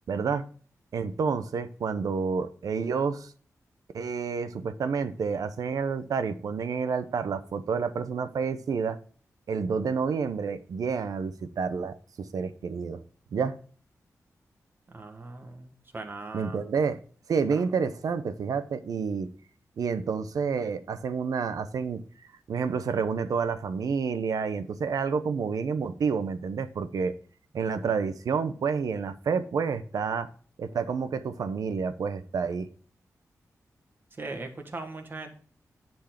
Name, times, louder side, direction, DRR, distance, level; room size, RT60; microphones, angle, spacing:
voice 1, 0.1-0.4 0.9-3.3 3.9-9.0 9.5-13.0 13.3-13.6 16.3-17.0 17.3-19.3 19.8-22.0 22.5-27.1 27.5-30.3 30.6-32.7, right 5 dB, 90° right, 11 dB, 0.8 m, -29 dB
voice 2, 14.9-16.6 17.5-17.6 34.1-35.3, right 3 dB, 35° right, 5 dB, 1.6 m, -39 dB
10.5 x 4.6 x 5.9 m, 0.44 s
wide cardioid pair, 130°, 6 cm